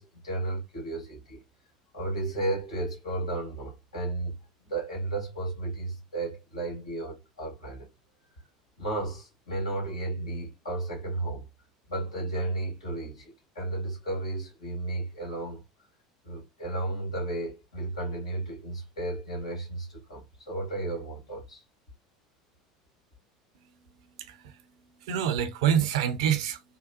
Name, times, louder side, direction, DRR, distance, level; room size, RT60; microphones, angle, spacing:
voice 1, 0.0-1.4 1.9-4.4 4.6-7.9 8.8-11.5 11.9-15.6 16.2-21.6, right 2 dB, 80° left, 1.8 m, -33 dB
voice 2, 24.2-24.6 25.0-26.6, right 9 dB, 65° right, 0.6 m, -26 dB
3.8 x 2.2 x 2.5 m
figure-of-eight pair, 75°, 3 cm